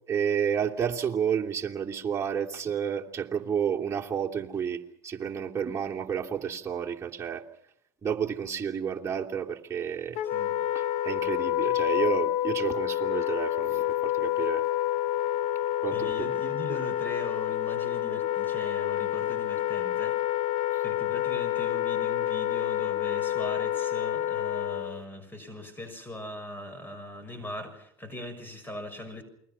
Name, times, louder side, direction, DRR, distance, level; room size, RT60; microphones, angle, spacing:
voice 1, 0.1-7.4 8.0-10.2 10.7-14.6 15.8-16.3, right 7 dB, 20° right, 3.0 m, -31 dB
Wind instrument woodwind instrument, 10.2-25.0, left 12 dB, 55° left, 1.0 m, -28 dB
voice 2, 15.9-20.2 20.8-29.2, left 1 dB, 15° left, 6.4 m, -40 dB
29.0 x 22.0 x 5.8 m
hypercardioid pair, 95°, 13 cm